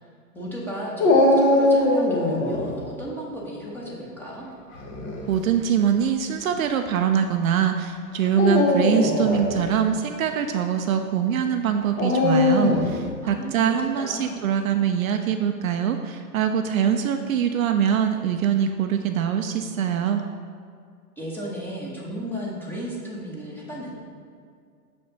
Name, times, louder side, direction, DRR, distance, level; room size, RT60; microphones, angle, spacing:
voice 1, 0.3-4.5 13.2-13.7 14.0-14.3 21.2-23.9, equal, 5° left, -5 dB, 1.1 m, -34 dB
Dog, 1.0-2.7 4.7-5.2 6.0-6.1 8.3-9.5 12.0-13.0, left 2 dB, 40° left, 1.3 m, -20 dB
voice 2, 5.3-20.2, right 8 dB, 60° right, 6 dB, 0.5 m, -23 dB
6.8 x 5.4 x 3.9 m, 2.2 s
hypercardioid pair, 120°, 48 cm